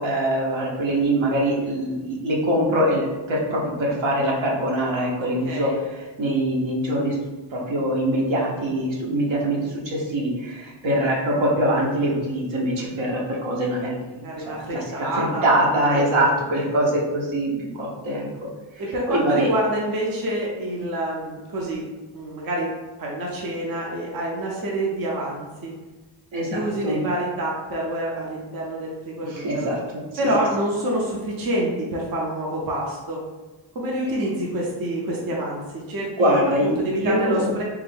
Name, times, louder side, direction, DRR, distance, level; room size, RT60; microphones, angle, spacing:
voice 1, 0.0-7.1 7.5-14.8 15.2-18.3 19.1-19.5 26.3-27.0 29.3-29.8 36.2-37.5, right 1 dB, 80° right, -3 dB, 1.1 m, -23 dB
voice 2, 5.2-5.7 14.2-16.3 16.6-16.8 18.8-21.8 22.1-22.7 23.0-25.7 26.5-29.7 30.2-33.2 33.7-37.6, right 1 dB, 50° right, -3 dB, 0.7 m, -27 dB
3.5 x 2.5 x 3.4 m, 1.2 s
wide cardioid pair, 165°, 46 cm